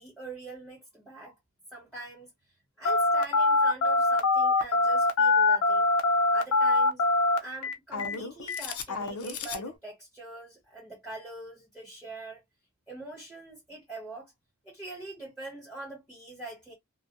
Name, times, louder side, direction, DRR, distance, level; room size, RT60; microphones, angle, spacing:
voice 1, 0.0-1.3 1.7-2.3 2.8-5.9 6.3-7.0 7.4-12.4 12.9-14.3 14.6-16.7, right 2 dB, ahead, 1.6 m, -43 dB
Telephone, 2.9-9.7, left 3 dB, 80° left, 0.7 m, -24 dB
2.6 x 2.3 x 2.6 m
head